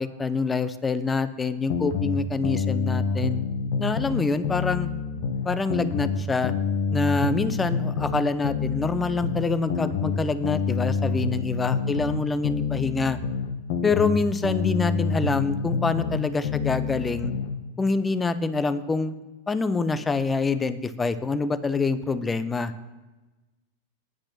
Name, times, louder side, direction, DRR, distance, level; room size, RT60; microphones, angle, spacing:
voice 1, 0.0-3.4 3.8-4.9 5.4-6.5 6.9-13.2 13.8-17.3 17.8-19.1 19.5-22.7, left 4 dB, 15° left, 14 dB, 0.7 m, -26 dB
sound 1, 1.7-4.2 4.4-8.2 8.4-12.2 12.4-16.2 16.4-17.5, left 5 dB, 50° left, 1.3 m, -27 dB
9.8 x 8.8 x 5.9 m, 1.2 s
figure-of-eight pair, 90°, 0 cm